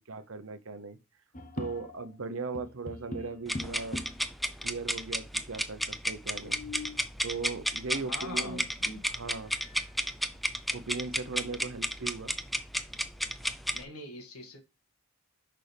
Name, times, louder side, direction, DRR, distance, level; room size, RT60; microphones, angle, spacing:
voice 1, 0.1-1.0 1.6-4.0 4.6-6.6 7.2-8.7 9.0-9.5 10.7-12.3, right 4 dB, 65° right, 0.8 m, -38 dB
sound 1, 1.3-2.2 2.5-4.3 5.1-5.2 5.4-5.5 6.2-7.1 8.8-8.9 9.4-9.9 10.3-10.4 11.0-11.9, left 2 dB, 35° left, 0.7 m, -43 dB
sound 2, 3.5-13.8, equal, ahead, 0.4 m, -32 dB
voice 2, 7.9-9.1 13.7-14.6, left 2 dB, 90° left, 2.0 m, -43 dB
6.3 x 5.5 x 3.3 m
head